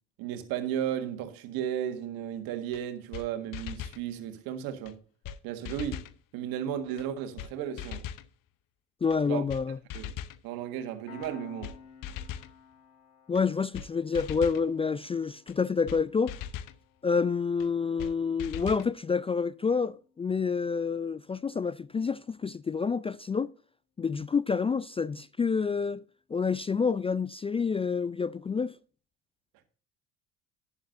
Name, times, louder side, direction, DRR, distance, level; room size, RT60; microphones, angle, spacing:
voice 1, 0.2-5.0 5.4-6.0 6.3-8.0 9.3-9.4 9.9-10.1 10.4-11.7, right 10 dB, 70° right, 1.7 m, -34 dB
sound 1, 2.7-2.8 3.1-3.3 3.5-4.0 4.9-5.0 5.2-5.4 5.6-6.1 7.0-7.1 7.4-7.5 7.8-8.3 9.1-9.2 9.5-9.6 9.9-10.4 11.2-11.3 11.6-11.8 12.0-12.5 13.3-13.4 13.7-13.9 14.1-14.6 15.5-15.6 15.9-16.0 16.3-16.8 17.6-17.7 18.0-18.1 18.4-18.9, left 9 dB, 60° left, 0.9 m, -39 dB
voice 2, 9.0-9.8 13.3-16.3 17.0-23.5 24.0-26.0 26.3-28.7, left 5 dB, 15° left, 0.3 m, -28 dB
Piano, 11.1-22.2, left 7 dB, 85° left, 3.2 m, -56 dB
11.5 x 10.0 x 2.6 m
hypercardioid pair, 60°, 38 cm